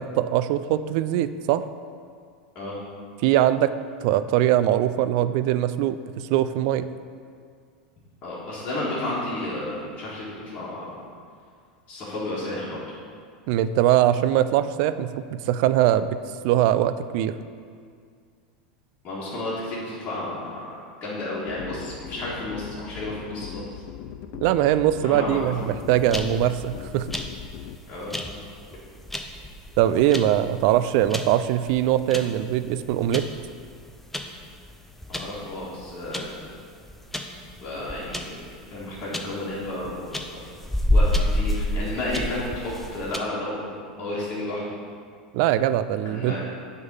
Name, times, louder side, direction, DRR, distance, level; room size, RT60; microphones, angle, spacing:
voice 1, 0.0-1.6 3.2-3.7 4.0-6.9 13.5-16.2 16.4-17.4 24.4-27.1 29.8-33.2 45.3-46.4, right 12 dB, 60° right, 13 dB, 0.3 m, -22 dB
voice 2, 8.2-10.9 11.9-12.8 19.0-20.8 21.0-23.8 25.0-25.4 27.9-28.2 35.1-36.3 37.6-38.3 38.7-40.5 40.9-44.6 46.0-46.4, left 1 dB, 35° left, -10 dB, 1.9 m, -32 dB
sound 1, 21.4-27.8, left 11 dB, 55° left, 0.4 m, -39 dB
sound 2, 25.6-43.2, left 1 dB, 5° left, 0.6 m, -30 dB
7.8 x 3.7 x 5.5 m, 2.1 s
hypercardioid pair, 100°, 5 cm